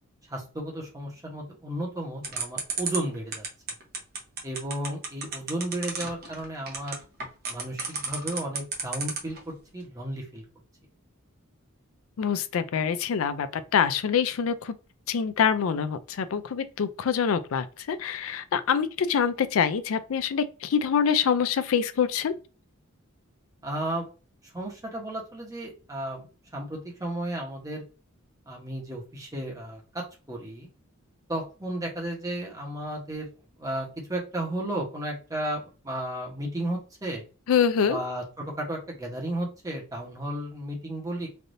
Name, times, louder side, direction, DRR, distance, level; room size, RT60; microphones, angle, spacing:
voice 1, 0.3-3.4 4.4-7.0 7.5-10.4 23.6-24.1 24.5-26.3 26.5-27.8 28.5-29.8 30.3-30.7 31.3-33.3 33.6-37.2 37.8-41.3, right 1 dB, 15° right, 1.0 m, -33 dB
sound 1, 2.2-9.4, right 4 dB, 50° right, 0.9 m, -31 dB
voice 2, 12.2-13.5 13.7-14.5 15.1-22.3 37.5-38.0, left 7 dB, 75° left, 0.4 m, -25 dB
3.3 x 2.5 x 2.6 m
head